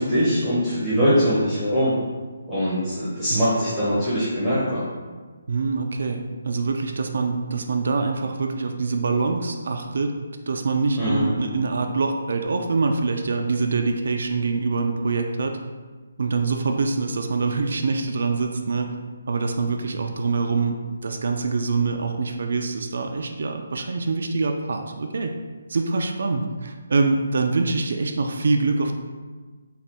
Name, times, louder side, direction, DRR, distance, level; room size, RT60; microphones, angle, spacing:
voice 1, 0.0-1.9 2.5-4.8 11.0-11.3, equal, 5° left, -15 dB, 1.1 m, -22 dB
voice 2, 5.5-10.1 10.5-15.5 16.2-18.9 19.3-20.7 21.0-25.3 25.7-28.9, right 4 dB, 65° right, 4 dB, 0.3 m, -24 dB
3.8 x 2.4 x 3.4 m, 1.4 s
hypercardioid pair, 160°, 0 cm